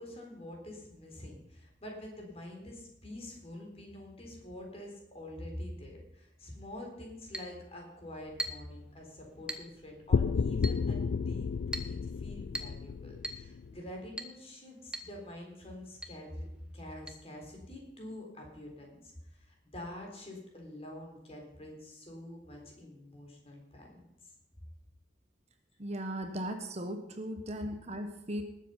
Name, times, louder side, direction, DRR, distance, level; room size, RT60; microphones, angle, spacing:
voice 1, 0.0-16.5 16.7-24.3, left 1 dB, 35° left, 0 dB, 3.8 m, -46 dB
Chink clink, 7.3-7.6 8.4-8.7 9.5-9.7 10.6-10.8 11.7-12.0 12.5-12.8 13.2-13.5 14.2-14.4 14.9-15.1 15.4-15.5 16.0-16.2 17.1-17.2, right 1 dB, 5° right, 1.0 m, -39 dB
sound 1, 10.1-13.8, left 5 dB, 70° left, 0.4 m, -32 dB
voice 2, 25.8-28.4, equal, 35° right, 6 dB, 1.2 m, -37 dB
19.5 x 7.6 x 5.6 m, 0.85 s
head